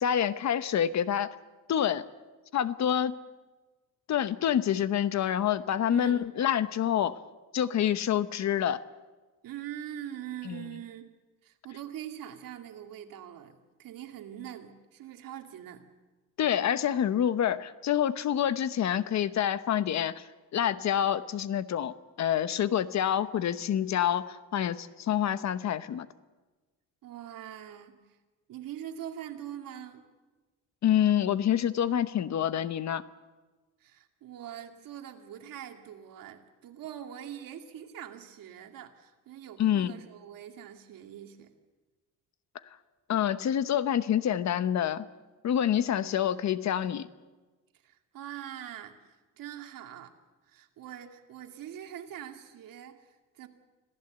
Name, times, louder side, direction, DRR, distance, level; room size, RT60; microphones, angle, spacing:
voice 1, 0.0-1.3 1.7-2.0 2.5-3.2 4.1-7.2 7.5-8.8 10.5-10.6 16.4-20.2 20.5-26.1 30.8-33.0 39.6-39.9 43.1-45.1 45.4-47.1, left 10 dB, 55° left, 14 dB, 0.9 m, -27 dB
voice 2, 5.9-6.3 9.4-11.1 11.4-15.9 27.0-28.0 28.5-30.0 33.8-41.5 47.8-50.1 50.5-53.5, right 10 dB, 75° right, 5 dB, 2.4 m, -43 dB
26.0 x 16.0 x 8.0 m, 1.2 s
cardioid pair, 135°, 34 cm